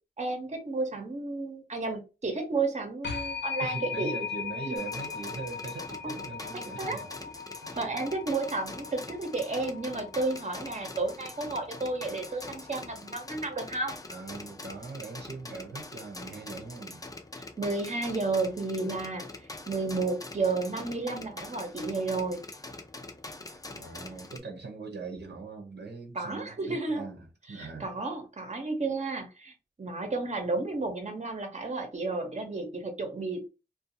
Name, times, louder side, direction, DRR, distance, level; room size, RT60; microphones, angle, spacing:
voice 1, 0.2-4.1 4.7-4.8 6.0-6.1 6.8-7.0 7.8-14.0 17.4-19.3 19.7-22.4 26.1-27.1 27.5-33.5, right 3 dB, 40° right, 0.8 m, -32 dB
sound 1, 3.0-13.7, left 6 dB, 85° left, 0.7 m, -40 dB
voice 2, 3.6-7.1 7.6-7.8 14.1-17.0 23.8-27.9 30.8-30.9, right 4 dB, 75° right, 0.7 m, -41 dB
sound 2, 4.8-24.4, left 2 dB, 20° left, 0.5 m, -44 dB
2.5 x 2.3 x 2.8 m
cardioid pair, 50°, 18 cm